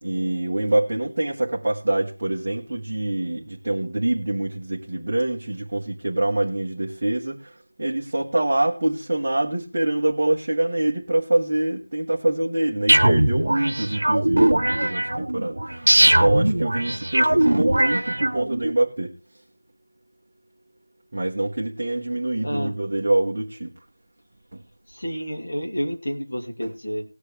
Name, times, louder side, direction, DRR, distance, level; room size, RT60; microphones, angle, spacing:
voice 1, 0.0-19.1 21.1-23.7 24.5-24.6, right 1 dB, 20° right, 1.1 m, -25 dB
sound 1, 12.9-18.7, right 1 dB, 60° right, 1.2 m, -20 dB
voice 2, 22.4-22.7 24.9-27.0, equal, 45° left, 2.7 m, -29 dB
19.0 x 6.7 x 3.3 m
figure-of-eight pair, 180°, 0 cm